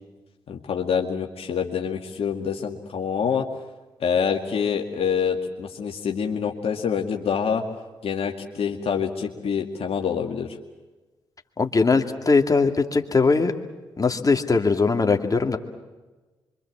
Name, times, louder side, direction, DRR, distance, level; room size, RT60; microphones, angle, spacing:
voice 1, 0.5-3.5 4.0-7.6 8.0-10.6, left 7 dB, 60° left, 2 dB, 2.0 m, -26 dB
voice 2, 11.6-13.5 14.0-15.6, left 4 dB, 30° left, 5 dB, 2.4 m, -20 dB
25.5 x 24.5 x 7.5 m, 1.2 s
hypercardioid pair, 40°, 11 cm